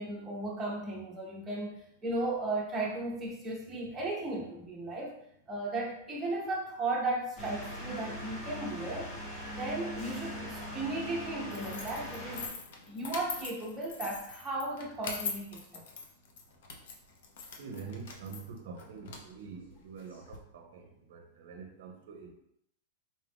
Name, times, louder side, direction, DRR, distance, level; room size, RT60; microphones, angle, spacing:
voice 1, 0.0-5.1 5.5-9.1 9.5-12.5 12.9-15.8, right 2 dB, 5° right, -4 dB, 0.7 m, -35 dB
sound 1, 7.4-12.5, equal, 25° left, 1.0 m, -41 dB
sound 2, 11.5-20.4, left 5 dB, 60° left, 0.6 m, -43 dB
voice 2, 17.6-22.3, right 5 dB, 55° right, 3 dB, 0.6 m, -46 dB
4.0 x 2.5 x 3.4 m, 0.74 s
supercardioid pair, 175°, 0 cm